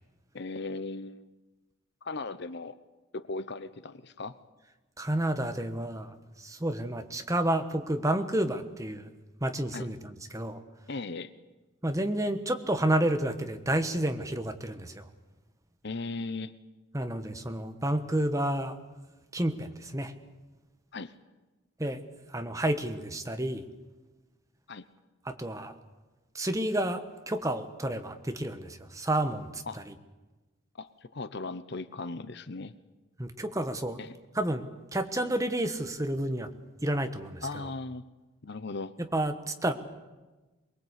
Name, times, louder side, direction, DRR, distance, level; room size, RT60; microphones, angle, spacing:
voice 1, 0.3-1.3 2.0-2.8 3.1-4.4 9.7-9.9 10.9-11.3 15.8-16.5 20.9-21.1 24.7-24.9 29.7-29.8 30.8-32.7 34.0-34.2 37.4-38.0 38.4-38.9, left 3 dB, 55° left, 13 dB, 0.9 m, -37 dB
voice 2, 5.0-9.1 9.4-10.6 11.8-15.1 16.9-18.7 19.3-20.1 21.8-22.0 22.3-23.6 25.2-25.7 26.3-29.9 33.2-34.0 34.3-34.7 34.9-36.5 36.8-37.7 39.0-39.7, right 1 dB, 15° right, 8 dB, 1.3 m, -30 dB
23.0 x 21.5 x 8.3 m, 1.2 s
head